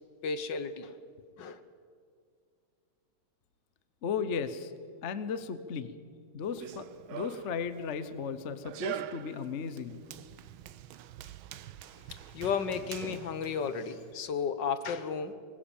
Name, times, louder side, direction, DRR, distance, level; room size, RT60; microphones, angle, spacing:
voice 1, 0.2-1.0 1.4-1.6 12.1-15.3, left 6 dB, 65° left, 1.6 m, -33 dB
voice 2, 4.0-4.7 5.0-5.9 6.3-10.0, left 6 dB, 45° left, 1.0 m, -35 dB
Run, 6.4-14.1, right 10 dB, 85° right, 1.6 m, -44 dB
24.0 x 20.5 x 7.2 m
omnidirectional pair, 2.2 m